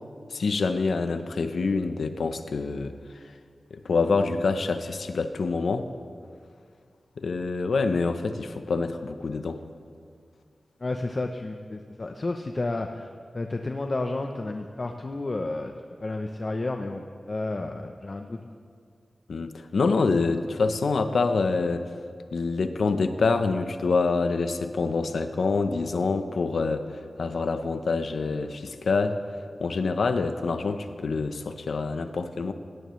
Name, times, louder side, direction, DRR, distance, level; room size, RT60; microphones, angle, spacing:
voice 1, 0.3-2.9 3.7-5.9 7.2-9.6 19.3-21.9 22.3-29.2 29.6-32.5, left 4 dB, 80° left, 8 dB, 0.8 m, -26 dB
voice 2, 10.8-13.1 13.3-15.7 16.0-18.4, left 2 dB, 40° left, 4 dB, 0.7 m, -31 dB
17.5 x 17.0 x 3.2 m, 2.2 s
wide cardioid pair, 105°, 0 cm